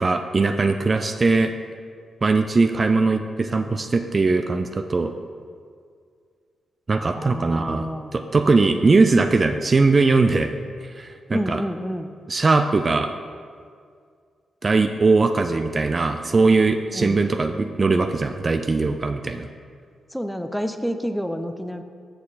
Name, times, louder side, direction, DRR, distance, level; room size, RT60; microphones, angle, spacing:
voice 1, 0.0-1.5 2.2-5.1 6.9-7.8 8.1-10.5 11.0-11.6 12.3-13.1 14.6-19.5, right 3 dB, 40° right, 8 dB, 0.4 m, -20 dB
voice 2, 7.1-8.5 11.3-12.1 16.9-17.3 20.1-21.8, equal, ahead, 8 dB, 0.6 m, -29 dB
8.6 x 5.5 x 4.0 m, 2.1 s
supercardioid pair, 45°, 0 cm